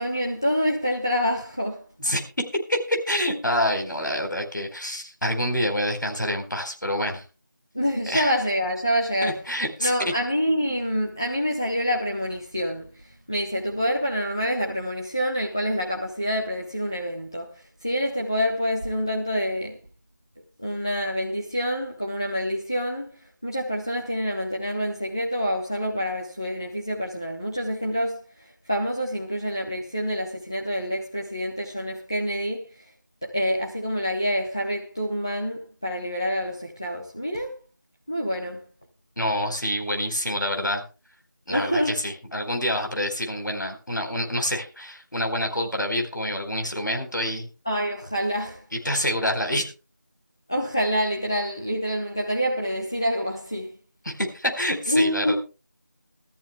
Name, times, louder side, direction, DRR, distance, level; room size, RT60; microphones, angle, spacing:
voice 1, 0.0-1.8 7.7-9.4 9.8-19.8 20.6-28.2 28.7-32.6 33.2-37.5 38.1-38.6 41.5-42.0 47.7-48.6 50.5-53.7 54.9-55.3, equal, 15° left, 0.6 m, -27 dB
voice 2, 2.7-7.2 8.1-8.4 9.2-10.1 39.2-40.8 41.5-47.5 48.7-49.7 54.0-55.3, equal, 80° left, 4.2 m, -27 dB
22.5 x 13.5 x 2.2 m
figure-of-eight pair, 170°, 10 cm